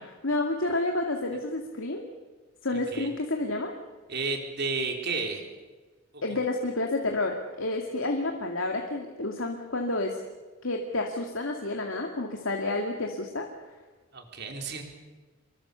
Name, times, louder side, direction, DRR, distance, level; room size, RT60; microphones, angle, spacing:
voice 1, 0.2-2.0 2.6-3.7 6.2-10.2 10.6-13.5, left 2 dB, 80° left, 2 dB, 2.4 m, -30 dB
voice 2, 4.1-5.4 6.3-6.4 14.1-14.8, right 4 dB, 55° right, 3 dB, 4.1 m, -32 dB
26.5 x 23.0 x 7.0 m, 1.3 s
head